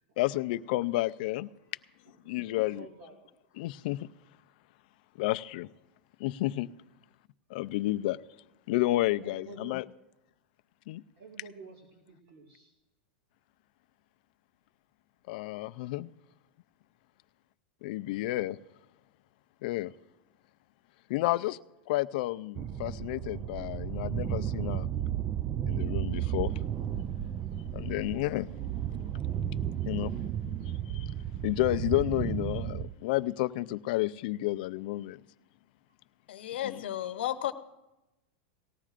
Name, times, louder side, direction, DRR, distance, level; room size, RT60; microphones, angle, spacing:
voice 1, 0.2-1.5 2.3-2.9 3.6-4.1 5.2-5.7 6.2-6.7 7.5-8.2 8.7-9.9 10.9-11.0 15.3-16.1 17.8-18.6 19.6-19.9 21.1-21.6 21.9-24.9 25.7-26.5 27.7-28.5 29.9-30.1 30.9-31.1 31.4-35.2 36.6-36.8, left 17 dB, 55° left, 0.4 m, -31 dB
voice 2, 2.4-3.1 9.2-9.8 11.2-12.7, right 4 dB, 55° right, 2.0 m, -49 dB
sound 1, 22.6-32.9, right 10 dB, 20° right, 0.3 m, -33 dB
voice 3, 36.3-37.5, left 12 dB, 85° left, 0.8 m, -33 dB
18.5 x 14.5 x 2.5 m
supercardioid pair, 155°, 6 cm